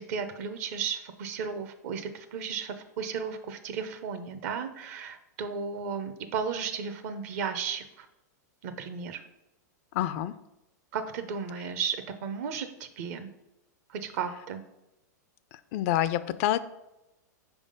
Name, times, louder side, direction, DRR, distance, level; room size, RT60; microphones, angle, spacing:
voice 1, 0.0-8.1 8.6-9.2 10.9-13.3 13.9-14.6, right 6 dB, 55° right, 9 dB, 0.7 m, -34 dB
voice 2, 9.9-10.3 15.5-16.6, left 13 dB, 50° left, 14 dB, 0.4 m, -27 dB
4.9 x 3.6 x 5.3 m, 0.93 s
hypercardioid pair, 110°, 10 cm